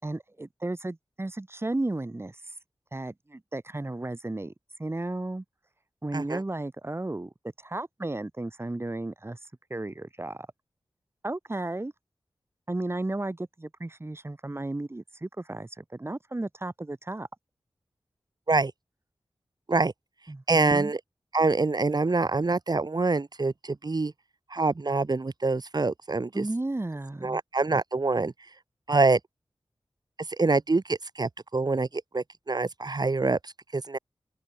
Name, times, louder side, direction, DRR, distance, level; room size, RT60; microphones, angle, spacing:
voice 1, 0.0-2.4 2.9-4.5 4.8-5.4 6.0-9.4 9.7-10.5 11.2-11.9 12.7-17.3 20.3-20.9 26.3-27.4, right 2 dB, 25° right, 3.3 m, -34 dB
voice 2, 20.5-21.0 21.3-24.1 24.5-26.4 27.2-28.3 28.9-29.2 30.4-34.0, right 3 dB, 50° right, 4.6 m, -25 dB
open air
wide cardioid pair, 85°, 9 cm